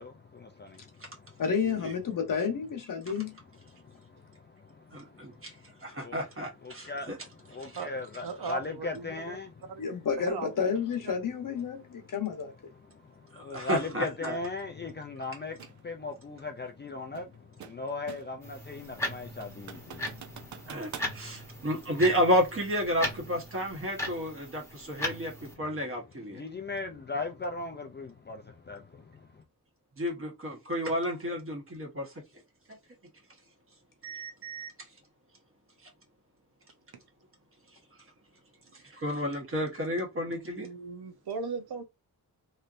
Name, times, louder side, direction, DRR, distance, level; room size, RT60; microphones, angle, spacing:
voice 1, 0.0-1.4 3.6-6.2 6.6-9.9 11.8-12.1 12.7-21.7 25.4-25.7 26.3-29.4, left 2 dB, 30° left, 0.3 m, -39 dB
voice 2, 1.4-3.4 9.8-12.5, left 6 dB, 55° left, 1.0 m, -30 dB
voice 3, 4.9-5.5 5.8-7.2 13.5-14.4 20.7-26.4 30.0-32.1 34.0-34.7 38.9-40.7, equal, 35° right, 1.2 m, -31 dB
voice 4, 8.2-9.4 9.7-9.8 10.2-10.7 11.1-11.2 40.3-41.8, right 5 dB, 80° right, 0.8 m, -38 dB
sound 1, 15.6-15.8 17.1-18.5 18.8-18.9 19.4-21.2, right 8 dB, 50° right, 0.5 m, -46 dB
sound 2, 18.4-25.5, left 1 dB, 5° left, 1.0 m, -38 dB
3.2 x 2.7 x 2.5 m
wide cardioid pair, 145°, 38 cm